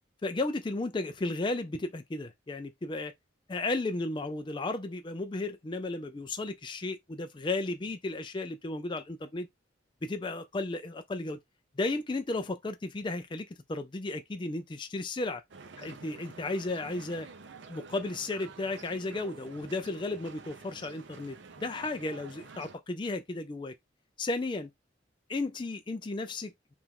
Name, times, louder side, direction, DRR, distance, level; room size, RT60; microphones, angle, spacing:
voice 1, 0.2-3.1 3.5-9.5 10.0-11.4 11.8-15.4 15.8-17.3 17.7-23.7 24.2-24.7 25.3-26.5, left 2 dB, 25° left, 0.4 m, -34 dB
sound 1, 15.5-22.7, right 4 dB, 70° right, 0.6 m, -49 dB
4.8 x 2.5 x 3.4 m
head